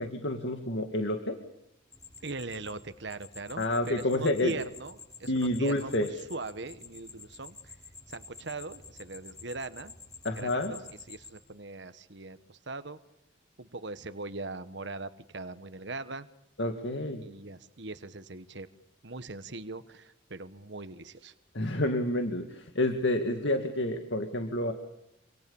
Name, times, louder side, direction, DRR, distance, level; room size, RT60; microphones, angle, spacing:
voice 1, 0.0-1.4 3.6-4.6 5.3-6.1 10.2-10.7 16.6-17.2 21.5-24.7, left 1 dB, 65° left, 5 dB, 2.1 m, -29 dB
sound 1, 1.9-11.3, left 4 dB, 20° left, 7.8 m, -50 dB
voice 2, 2.2-7.7 8.1-9.9 10.3-10.8 11.1-13.0 13.6-16.3 17.2-18.7 19.0-21.3, right 3 dB, 60° right, 11 dB, 1.3 m, -40 dB
27.5 x 27.0 x 7.1 m, 0.81 s
head